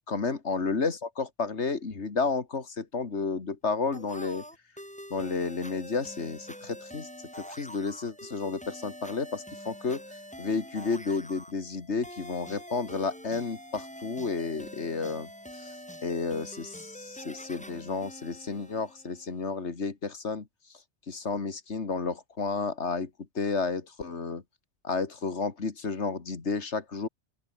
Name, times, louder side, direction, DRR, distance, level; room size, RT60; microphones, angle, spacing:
voice 1, 0.1-4.4 5.1-7.1 7.4-10.0 10.4-15.8 16.0-20.5 21.1-23.1 23.3-24.4 24.8-27.1, left 4 dB, 80° left, 2.5 m, -31 dB
sound 1, 3.9-19.4, equal, 5° left, 4.9 m, -45 dB
open air
omnidirectional pair, 1.1 m